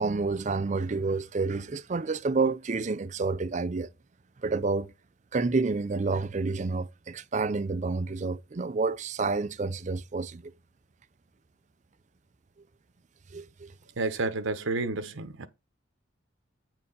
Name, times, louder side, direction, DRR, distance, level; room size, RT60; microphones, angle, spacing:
voice 1, 0.0-3.9 4.4-4.9 5.3-10.5 13.3-13.7, right 3 dB, 35° right, 0.4 m, -29 dB
voice 2, 14.0-15.5, right 3 dB, 85° right, 0.9 m, -30 dB
8.4 x 4.6 x 5.4 m
head